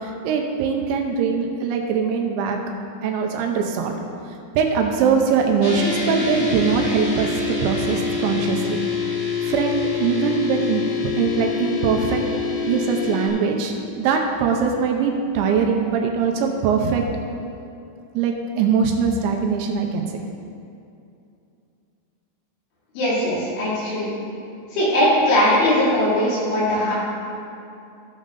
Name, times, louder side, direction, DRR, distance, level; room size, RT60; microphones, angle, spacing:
voice 1, 0.0-2.6 3.0-4.0 4.5-8.8 9.4-10.8 11.2-12.2 12.6-17.0 18.1-20.1, right 6 dB, 85° right, 2 dB, 2.9 m, -22 dB
sound 1, 5.6-13.3, left 4 dB, 50° left, 1.4 m, -25 dB
voice 2, 22.9-24.1 24.7-26.9, left 1 dB, 80° left, -8 dB, 5.1 m, -20 dB
15.0 x 6.4 x 3.9 m, 2.6 s
omnidirectional pair, 5.4 m